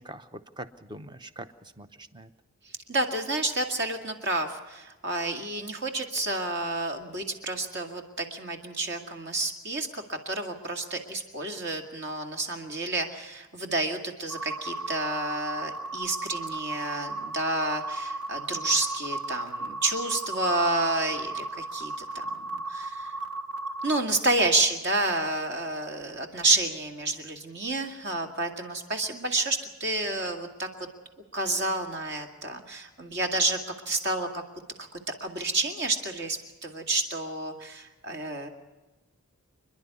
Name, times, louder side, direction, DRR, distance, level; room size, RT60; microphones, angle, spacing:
voice 1, 0.0-2.3, right 1 dB, 20° right, 11 dB, 0.8 m, -43 dB
voice 2, 2.9-23.1 23.8-30.7 31.3-33.6 33.9-34.4 34.8-34.9 35.2-38.5, right 2 dB, 50° right, 4 dB, 2.3 m, -29 dB
sound 1, 14.3-24.0, right 2 dB, 90° right, 1.4 m, -35 dB
28.5 x 11.0 x 9.6 m, 1.2 s
head